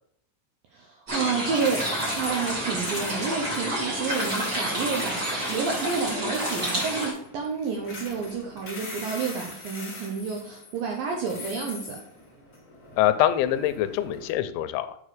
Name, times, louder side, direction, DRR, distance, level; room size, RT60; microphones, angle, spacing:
voice 1, 0.7-12.0, right 5 dB, 80° right, 0 dB, 2.1 m, -30 dB
sound 1, 1.1-7.1, right 1 dB, 25° right, 2.6 m, -29 dB
sound 2, 1.4-14.3, left 2 dB, 60° left, 0.9 m, -41 dB
voice 2, 13.0-15.0, left 12 dB, 85° left, 11 dB, 3.0 m, -24 dB
6.7 x 5.3 x 4.9 m, 0.73 s
omnidirectional pair, 5.3 m